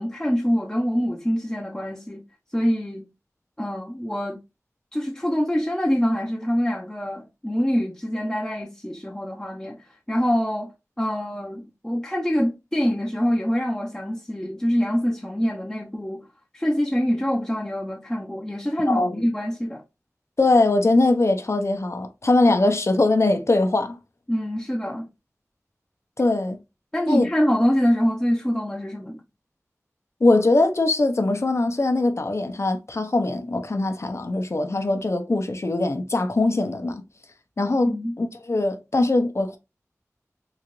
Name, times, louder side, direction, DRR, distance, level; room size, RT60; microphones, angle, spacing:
voice 1, 0.0-2.2 2.5-3.1 3.6-4.4 4.9-9.8 10.1-10.7 11.0-16.3 16.5-19.8 24.3-25.1 26.9-29.2 37.8-38.1, equal, 10° left, 0.5 m, -25 dB
voice 2, 18.9-19.2 20.4-24.0 26.2-26.6 27.1-27.3 30.2-37.0 37.6-39.6, left 2 dB, 55° left, 0.6 m, -21 dB
3.8 x 2.4 x 3.0 m
wide cardioid pair, 50°, 5 cm